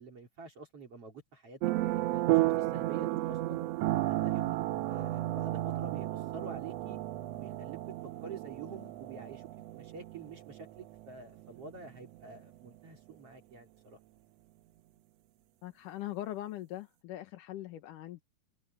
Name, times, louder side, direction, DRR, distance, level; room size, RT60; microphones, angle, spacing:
voice 1, 0.0-3.6 4.2-7.0 7.3-7.8 8.2-14.0, right 4 dB, 50° right, 4.1 m, -48 dB
sound 1, 1.6-12.4, right 16 dB, 80° right, 1.5 m, -33 dB
voice 2, 15.6-18.2, left 14 dB, 90° left, 2.7 m, -41 dB
omnidirectional pair, 3.6 m